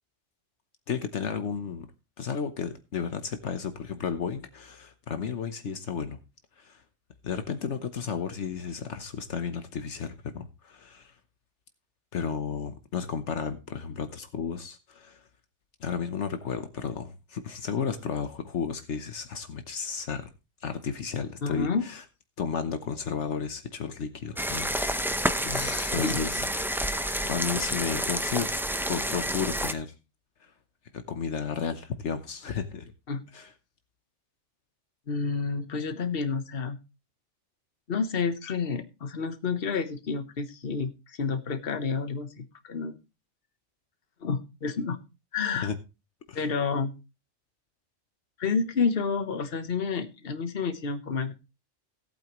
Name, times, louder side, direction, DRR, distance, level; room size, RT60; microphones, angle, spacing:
voice 1, 0.9-1.9 2.2-6.2 6.6-6.8 7.2-11.1 12.1-15.2 15.8-20.3 20.6-22.0 22.4-25.4 25.9-26.5 27.3-28.5 28.9-29.9 30.4-30.5 30.9-32.9 33.3-33.5 45.6-45.7 46.3-46.4, left 6 dB, 75° left, 1.3 m, -33 dB
voice 2, 21.4-21.9 25.4-26.2 33.1-33.2 35.1-36.8 37.9-43.0 44.2-45.0 45.3-45.7 46.3-46.9 48.4-51.3, left 5 dB, 55° left, 1.3 m, -30 dB
sound 1, 24.4-29.7, equal, ahead, 0.5 m, -29 dB
17.5 x 8.7 x 3.0 m
omnidirectional pair, 1.2 m